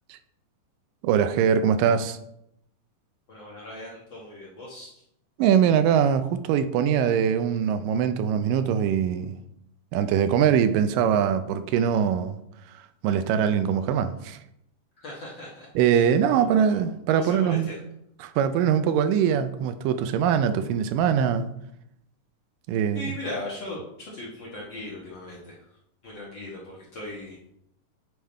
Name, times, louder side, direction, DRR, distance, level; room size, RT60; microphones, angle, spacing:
voice 1, 1.0-2.2 5.4-9.4 9.9-12.4 13.0-14.4 15.8-17.7 18.2-21.5 22.7-23.1, right 8 dB, 85° right, 10 dB, 2.2 m, -22 dB
voice 2, 3.3-5.0 15.0-16.8 17.1-17.8 22.9-25.6 26.0-27.4, left 1 dB, 55° left, -5 dB, 1.4 m, -39 dB
9.3 x 3.6 x 4.3 m, 0.77 s
omnidirectional pair, 3.9 m